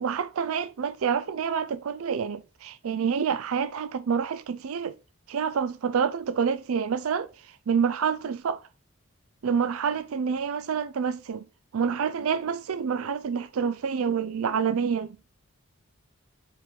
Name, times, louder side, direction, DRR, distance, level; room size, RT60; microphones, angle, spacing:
voice 1, 0.0-4.9 5.3-7.3 7.7-8.6 9.4-11.4 11.7-15.1, right 6 dB, 80° right, 0.4 m, -27 dB
4.6 x 4.4 x 5.0 m
head